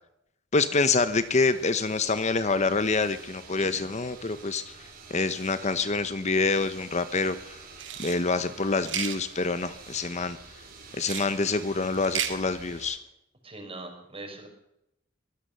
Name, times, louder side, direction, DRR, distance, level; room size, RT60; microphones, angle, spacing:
voice 1, 0.5-4.7 5.1-7.6 8.0-10.4 10.9-13.0, left 3 dB, 35° left, 12 dB, 0.9 m, -26 dB
sound 1, 0.7-12.9, right 4 dB, 50° right, 4.9 m, -48 dB
sound 2, 7.8-8.2 8.8-9.2 11.0-11.3 11.9-12.3, right 9 dB, 70° right, 2.2 m, -32 dB
voice 2, 13.4-14.5, right 2 dB, 30° right, 3 dB, 5.5 m, -41 dB
23.0 x 17.0 x 6.8 m, 0.84 s
head